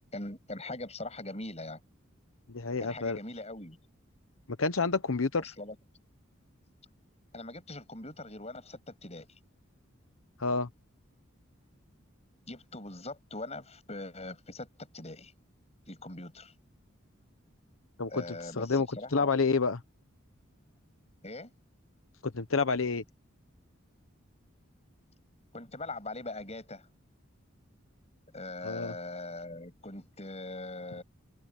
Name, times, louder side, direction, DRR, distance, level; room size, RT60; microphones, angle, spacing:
voice 1, 0.1-1.8 2.8-3.8 5.4-5.8 7.3-9.3 12.5-15.3 15.9-16.5 18.1-19.3 21.2-21.5 25.5-26.9 28.3-31.0, left 2 dB, 30° left, 7.8 m, -41 dB
voice 2, 2.5-3.2 4.6-5.5 10.4-10.7 18.0-18.2 18.6-19.8 22.2-23.0 28.6-28.9, left 4 dB, 85° left, 1.0 m, -29 dB
head